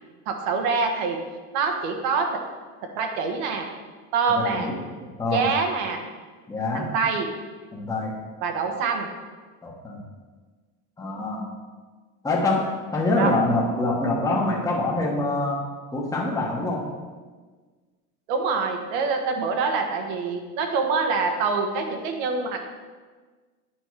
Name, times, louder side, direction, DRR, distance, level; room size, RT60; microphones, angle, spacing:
voice 1, 0.3-1.2 1.5-2.4 2.9-3.7 4.1-4.7 5.3-6.0 6.7-7.3 8.4-9.1 13.2-13.3 18.3-22.6, right 4 dB, 60° right, 4 dB, 1.4 m, -25 dB
voice 2, 4.3-4.8 5.2-5.4 6.5-6.9 7.7-8.2 9.6-10.0 11.0-11.5 12.2-15.6 15.9-16.9, left 2 dB, 10° left, -2 dB, 1.2 m, -25 dB
9.6 x 5.4 x 4.7 m, 1.4 s
cardioid pair, 155°, 40 cm